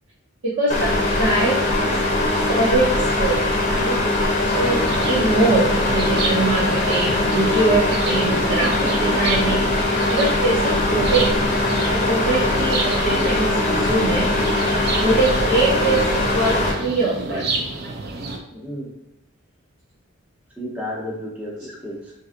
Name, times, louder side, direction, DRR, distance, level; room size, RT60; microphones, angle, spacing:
voice 1, 0.6-0.9 1.2-1.9 2.3-3.4 3.7-4.2 4.4-11.3 11.9-14.2 14.6-17.5, right 2 dB, 65° right, -8 dB, 0.8 m, -23 dB
sound 1, 0.7-16.7, left 2 dB, 35° left, 0.7 m, -21 dB
sound 2, 4.6-18.4, right 3 dB, 50° right, 0.4 m, -30 dB
voice 2, 18.5-18.9 20.6-22.1, left 1 dB, 5° right, -4 dB, 0.8 m, -32 dB
3.8 x 2.7 x 2.5 m, 0.92 s
head